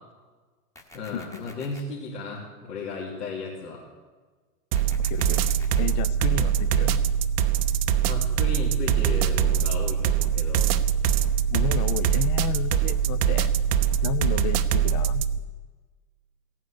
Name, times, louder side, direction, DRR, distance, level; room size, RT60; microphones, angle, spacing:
sound 1, 0.8-1.8 4.8-5.8, left 1 dB, 5° left, 1.1 m, -48 dB
voice 1, 0.9-3.8 8.0-10.7, left 3 dB, 75° left, -4 dB, 2.9 m, -35 dB
sound 2, 4.7-15.4, right 8 dB, 40° right, 0.7 m, -23 dB
voice 2, 5.1-5.4 5.8-7.0 11.5-13.5 14.0-15.2, left 13 dB, 30° left, 16 dB, 0.4 m, -32 dB
15.5 x 9.3 x 6.7 m, 1.4 s
hypercardioid pair, 125°, 48 cm